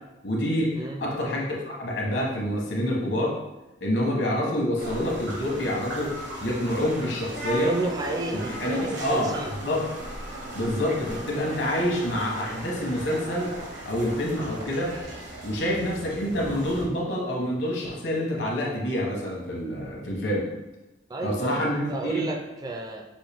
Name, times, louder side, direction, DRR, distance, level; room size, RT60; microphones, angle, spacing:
voice 1, 0.2-0.7 1.0-3.4 3.8-7.7 8.6-9.8 10.5-13.5 13.8-14.9 15.4-20.5 21.2-22.2, left 1 dB, 70° left, -2 dB, 1.1 m, -27 dB
sound 1, 4.8-16.9, right 1 dB, 80° right, 1.1 m, -37 dB
voice 2, 7.6-9.5 21.1-23.1, right 2 dB, 20° right, 3 dB, 0.3 m, -32 dB
5.5 x 2.6 x 3.4 m, 1.0 s
head